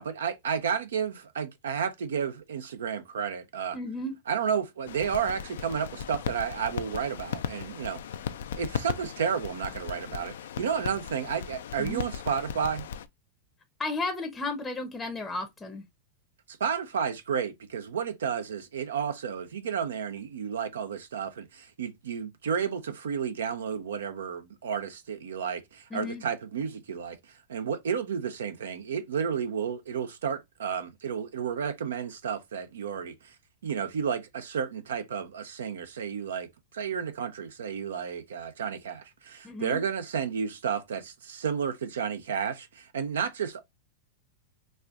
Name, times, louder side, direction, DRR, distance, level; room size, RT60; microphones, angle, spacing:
voice 1, 0.0-3.8 4.3-8.0 8.5-12.8 16.5-33.3 33.6-43.6, right 7 dB, 80° right, 0.5 m, -32 dB
voice 2, 3.7-4.1 11.8-12.0 13.8-15.9 25.9-26.2 39.4-39.8, left 2 dB, 15° left, 0.6 m, -33 dB
sound 1, 4.9-13.1, left 8 dB, 75° left, 0.3 m, -37 dB
4.2 x 2.4 x 2.3 m
hypercardioid pair, 105°, 0 cm